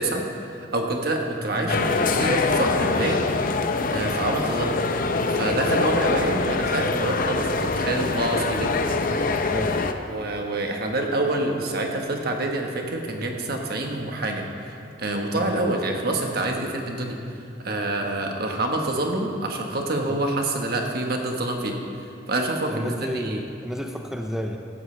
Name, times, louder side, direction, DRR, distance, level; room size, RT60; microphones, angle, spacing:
voice 1, 0.0-3.2 3.9-4.9 5.3-8.7 10.1-17.2 17.6-21.8 22.3-23.4, right 2 dB, 55° right, 2 dB, 1.4 m, -27 dB
sound 1, 1.7-9.9, left 3 dB, 50° left, 0.6 m, -24 dB
voice 2, 9.5-9.8 15.3-15.5 20.1-20.2 22.7-24.6, equal, 5° right, 3 dB, 0.5 m, -31 dB
16.0 x 12.5 x 3.3 m, 2.6 s
head